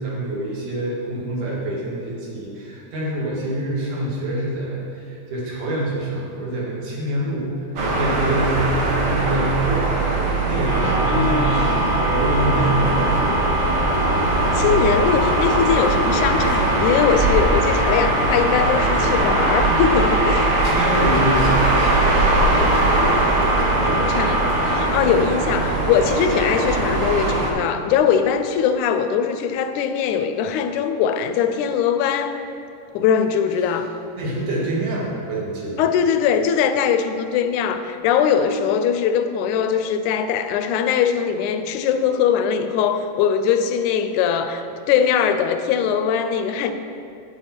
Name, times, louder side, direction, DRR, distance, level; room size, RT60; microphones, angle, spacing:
voice 1, 0.0-9.9 10.4-11.6 12.1-13.5 20.6-23.2 23.6-24.5 25.2-25.3 33.6-33.7 34.2-35.8, right 1 dB, 75° right, -5 dB, 3.4 m, -26 dB
sound 1, 7.8-27.5, right 2 dB, 55° right, 1.8 m, -21 dB
sound 2, 10.6-24.8, equal, 35° right, 1.2 m, -24 dB
voice 2, 11.1-12.0 14.6-20.5 23.9-32.4 32.9-33.9 35.8-46.7, left 7 dB, 80° left, 8 dB, 1.9 m, -21 dB
8.8 x 8.7 x 4.4 m, 2.7 s
omnidirectional pair, 3.5 m